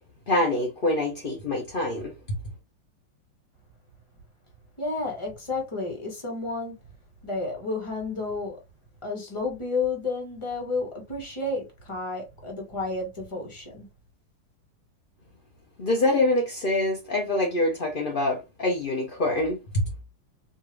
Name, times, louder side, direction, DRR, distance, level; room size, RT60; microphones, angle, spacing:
voice 1, 0.3-2.4 15.8-19.9, left 2 dB, 50° left, 0.6 m, -25 dB
voice 2, 4.8-6.8 7.2-8.6 9.0-13.9, left 3 dB, 20° left, 1.0 m, -31 dB
4.6 x 2.7 x 3.1 m
omnidirectional pair, 2.3 m